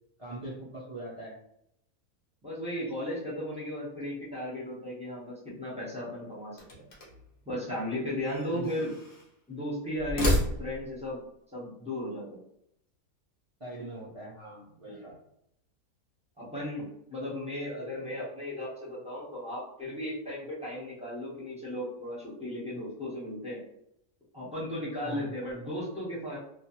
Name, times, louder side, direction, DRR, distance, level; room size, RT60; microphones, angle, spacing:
voice 1, 0.2-1.4 6.6-6.8 8.5-9.0 13.6-15.2 18.0-18.1 25.0-25.3, right 1 dB, 45° right, -7 dB, 0.4 m, -42 dB
voice 2, 2.4-6.9 7.5-8.9 9.5-11.2 11.5-12.4 14.8-15.0 16.4-23.6 24.3-26.4, left 1 dB, 5° right, -8 dB, 0.7 m, -36 dB
sound 1, 6.5-7.3 8.2-9.3 10.0-11.0, equal, 50° left, 0.7 m, -31 dB
2.4 x 2.1 x 2.8 m, 0.75 s
omnidirectional pair, 1.6 m